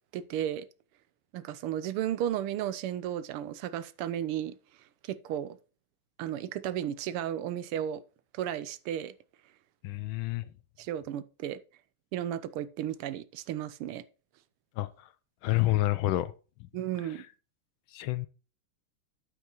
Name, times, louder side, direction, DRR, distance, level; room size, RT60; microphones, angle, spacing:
voice 1, 0.1-0.7 1.3-4.6 5.0-5.6 6.2-8.0 8.3-9.1 10.8-11.6 12.1-14.0 16.7-17.2, right 11 dB, 90° right, 1.6 m, -34 dB
voice 2, 9.8-10.4 14.8-15.1 15.4-16.3 17.9-18.3, left 17 dB, 75° left, 1.3 m, -28 dB
9.1 x 8.2 x 3.0 m
omnidirectional pair, 2.4 m